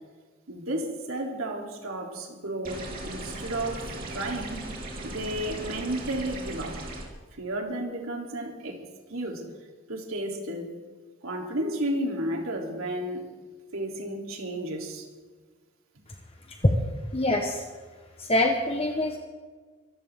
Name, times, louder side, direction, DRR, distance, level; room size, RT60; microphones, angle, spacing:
voice 1, 0.5-4.7 5.0-6.9 7.4-8.8 9.1-9.5 9.9-10.7 11.2-13.2 13.7-15.1, right 1 dB, 90° right, 0 dB, 3.5 m, -32 dB
sound 1, 2.6-7.0, right 1 dB, 45° right, 3.4 m, -37 dB
voice 2, 17.1-17.6 18.2-19.2, left 1 dB, 30° left, 2 dB, 1.3 m, -24 dB
24.5 x 15.0 x 3.8 m, 1.4 s
head